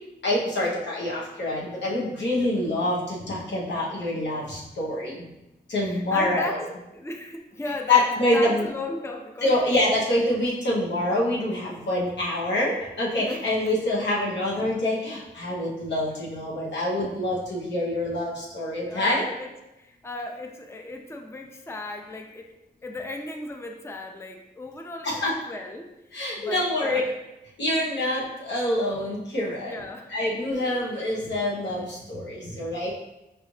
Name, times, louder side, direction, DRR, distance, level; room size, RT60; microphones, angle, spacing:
voice 1, 0.2-5.3 5.7-6.7 7.9-8.7 9.4-19.3 25.0-25.3 26.1-27.0 27.6-29.8 30.1-32.9, left 1 dB, 85° left, -5 dB, 1.1 m, -26 dB
voice 2, 5.8-6.6 6.9-9.9 11.6-11.7 13.2-13.7 18.8-19.5 19.8-22.5 22.8-27.2 29.7-30.2, left 2 dB, 15° left, 3 dB, 0.5 m, -37 dB
4.9 x 2.6 x 3.2 m, 0.94 s
cardioid pair, 60°, 18 cm